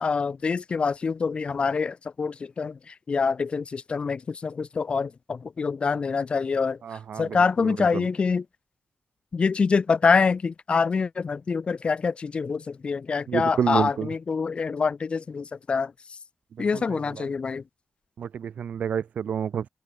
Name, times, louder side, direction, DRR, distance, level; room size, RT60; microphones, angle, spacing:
voice 1, 0.0-2.8 3.1-6.8 7.2-8.4 9.3-15.9 16.6-17.6, left 5 dB, 50° left, 1.9 m, -25 dB
voice 2, 6.8-8.1 13.3-14.1 16.6-17.3 18.2-19.7, right 8 dB, 85° right, 2.4 m, -30 dB
wide cardioid pair, 110°, 2 cm